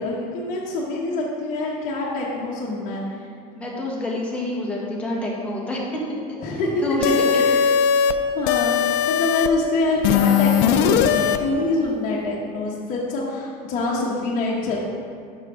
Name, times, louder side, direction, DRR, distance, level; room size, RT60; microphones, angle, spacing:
voice 1, 0.0-3.2 6.4-6.8 7.3-7.6 8.3-14.8, left 2 dB, 45° left, -5 dB, 1.1 m, -25 dB
voice 2, 3.5-6.0 6.3-7.4, left 1 dB, 5° left, -4 dB, 1.4 m, -27 dB
sound 1, 7.0-8.1 8.5-9.5 10.0-11.4, left 8 dB, 65° left, 0.5 m, -19 dB
7.8 x 5.9 x 3.7 m, 2.2 s
supercardioid pair, 135°, 19 cm